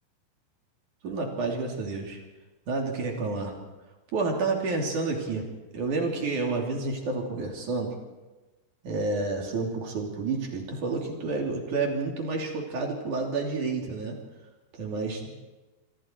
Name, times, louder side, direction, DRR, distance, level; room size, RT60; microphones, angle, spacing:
voice 1, 1.0-2.2 2.7-3.6 4.1-5.5 5.7-7.9 8.8-14.2 14.7-15.3, right 3 dB, 40° right, 1 dB, 3.8 m, -29 dB
27.0 x 24.0 x 4.6 m, 1.2 s
omnidirectional pair, 5.9 m